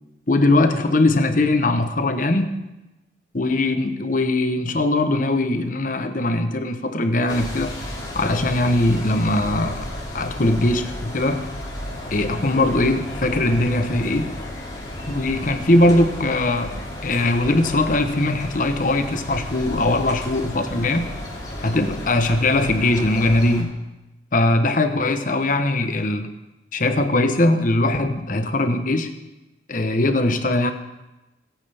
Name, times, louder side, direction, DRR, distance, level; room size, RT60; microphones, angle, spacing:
voice 1, 0.3-2.5 3.3-7.7 8.1-9.8 10.1-11.5 12.1-14.3 15.1-21.1 21.6-23.7 24.3-26.3 26.7-29.1 29.7-30.7, left 2 dB, 45° left, 8 dB, 1.0 m, -20 dB
sound 1, 7.3-23.6, left 1 dB, 25° left, 3.7 m, -33 dB
20.0 x 9.1 x 3.5 m, 1.0 s
head